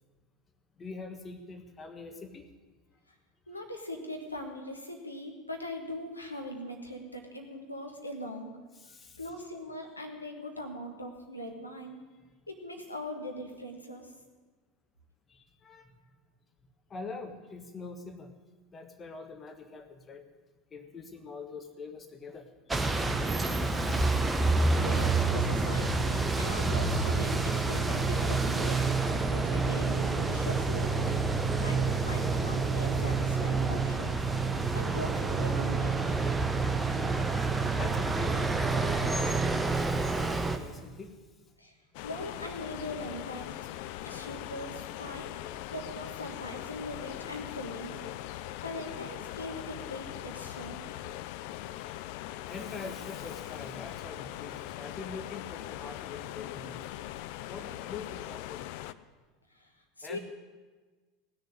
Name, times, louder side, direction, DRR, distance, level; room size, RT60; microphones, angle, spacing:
voice 1, 0.8-2.4 8.7-9.2 15.3-15.9 16.9-18.3 18.7-20.3 20.7-22.7 23.3-24.5 37.8-41.2 42.2-42.3 51.7-51.9 52.4-57.0 57.5-58.6 60.0-60.2, left 4 dB, 25° left, 6 dB, 1.5 m, -44 dB
voice 2, 3.5-8.5 9.2-12.0 12.5-14.1 24.8-29.0 29.3-31.2 31.6-34.2 34.7-36.0 41.6-41.7 42.0-43.6 44.0-45.3 45.7-48.0 48.6-50.9 59.5-59.7 60.0-60.2, left 1 dB, 85° left, 3 dB, 1.5 m, -41 dB
sound 1, 22.7-40.6, right 3 dB, 10° right, 1.1 m, -28 dB
sound 2, 41.9-58.9, left 14 dB, 55° left, 0.5 m, -41 dB
17.5 x 6.7 x 9.7 m, 1.3 s
figure-of-eight pair, 75°, 0 cm